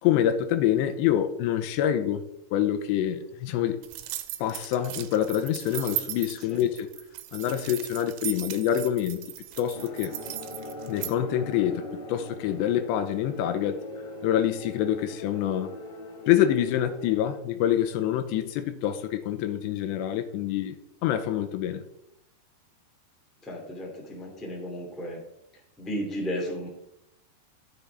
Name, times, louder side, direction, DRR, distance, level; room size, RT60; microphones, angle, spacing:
voice 1, 0.0-2.2 2.5-3.8 4.4-6.9 7.3-9.3 9.6-10.2 10.9-13.8 14.2-15.7 16.3-20.8 21.0-21.8, left 11 dB, 85° left, 9 dB, 2.9 m, -26 dB
sound 1, 3.8-11.1, right 15 dB, 85° right, 3.1 m, -37 dB
sound 2, 9.7-17.4, left 1 dB, 55° left, 4.4 m, -41 dB
voice 2, 23.4-25.2 25.8-26.7, equal, ahead, -1 dB, 1.3 m, -34 dB
13.5 x 7.5 x 3.5 m, 0.81 s
omnidirectional pair, 5.2 m